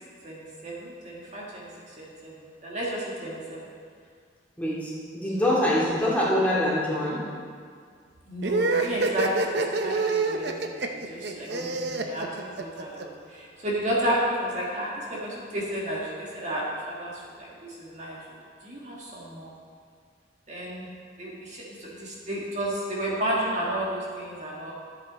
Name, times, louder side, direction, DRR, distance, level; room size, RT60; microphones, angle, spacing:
voice 1, 0.2-1.7 2.0-2.3 2.6-3.6 5.4-5.5 8.3-11.7 12.1-18.2 18.6-19.5 20.5-20.9 21.2-24.7, right 1 dB, 40° right, -5 dB, 1.8 m, -32 dB
voice 2, 4.6-7.2 11.5-12.0, left 1 dB, 10° left, -8 dB, 2.3 m, -25 dB
sound 1, 8.4-13.0, right 3 dB, 65° right, 0.7 m, -27 dB
12.5 x 7.9 x 4.1 m, 2.1 s
head